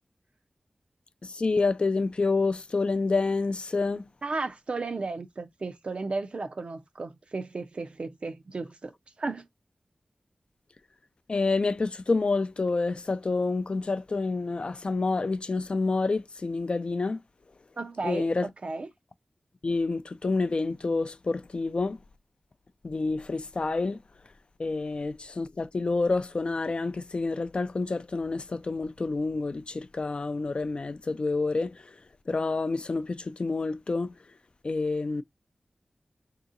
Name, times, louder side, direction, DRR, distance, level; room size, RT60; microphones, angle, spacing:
voice 1, 1.2-4.1 11.3-17.2 18.0-18.5 19.6-22.0 22.8-24.0 24.6-31.9 32.3-34.1 34.6-35.2, left 3 dB, 55° left, 0.3 m, -28 dB
voice 2, 4.2-9.5 17.8-18.3 18.6-18.9, right 3 dB, 60° right, 0.5 m, -34 dB
3.7 x 2.8 x 2.5 m
wide cardioid pair, 55°, 2 cm